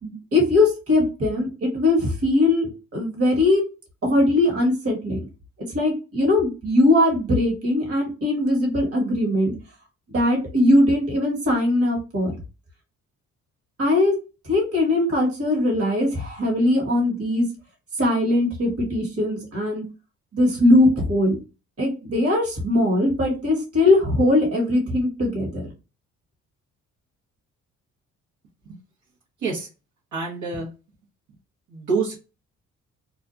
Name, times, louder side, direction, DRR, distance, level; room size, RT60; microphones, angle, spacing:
voice 1, 0.0-3.6 4.0-5.2 5.7-9.5 10.1-12.3 13.8-14.2 14.4-17.5 18.0-19.8 20.3-21.4 21.8-25.7, left 1 dB, 50° right, -2 dB, 1.6 m, -20 dB
voice 2, 30.1-30.7 31.7-32.1, right 4 dB, 70° right, -6 dB, 1.2 m, -26 dB
2.7 x 2.3 x 2.5 m, 0.30 s
cardioid pair, 90°, 30 cm